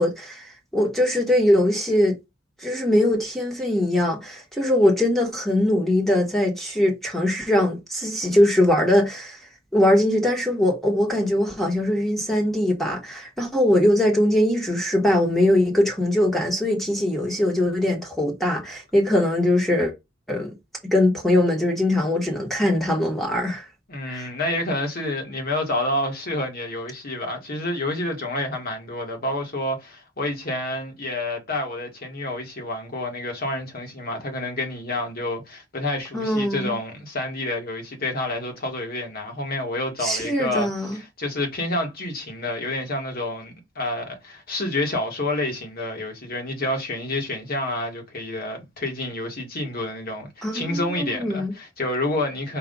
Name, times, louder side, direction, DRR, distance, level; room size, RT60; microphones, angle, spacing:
voice 1, 0.0-2.2 2.6-9.4 9.7-19.9 20.3-20.5 20.9-23.7 24.0-24.3 36.1-36.8 40.0-41.0 50.4-51.5, left 1 dB, ahead, 1.4 m, -21 dB
voice 2, 23.9-52.6, left 1 dB, 50° left, 1.9 m, -29 dB
4.8 x 2.7 x 3.9 m
head